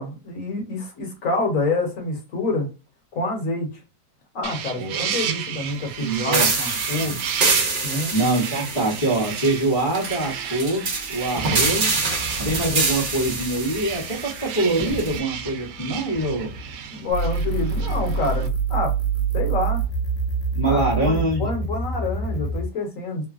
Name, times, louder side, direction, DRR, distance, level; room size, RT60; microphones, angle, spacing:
voice 1, 0.0-2.7 3.1-3.7 4.3-7.2 7.8-8.1 16.9-18.9 19.3-19.8 20.7-23.3, left 2 dB, 55° left, 1.2 m, -27 dB
sound 1, 4.4-18.5, right 8 dB, 80° right, 1.2 m, -33 dB
voice 2, 4.8-5.1 6.0-6.5 7.0-7.2 8.1-11.9 12.4-16.5 20.5-21.5, right 2 dB, 30° left, 0.6 m, -24 dB
sound 2, 6.3-15.2, right 3 dB, 50° right, 0.6 m, -26 dB
sound 3, 17.1-22.7, right 4 dB, 85° left, 1.2 m, -25 dB
3.0 x 2.2 x 2.4 m
omnidirectional pair, 1.9 m